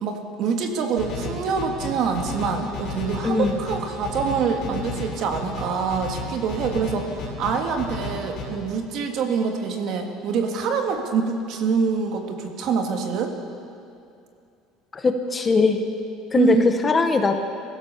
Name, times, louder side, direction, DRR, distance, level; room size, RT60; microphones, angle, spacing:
voice 1, 0.0-13.3 16.4-16.6, right 5 dB, 45° right, 4 dB, 2.0 m, -25 dB
sound 1, 1.0-8.4, left 3 dB, 40° left, 6.0 m, -33 dB
voice 2, 3.2-3.6 14.9-15.8 16.3-17.3, left 4 dB, 15° left, 6 dB, 0.9 m, -20 dB
23.5 x 16.0 x 6.9 m, 2.5 s
cardioid pair, 175°, 0 cm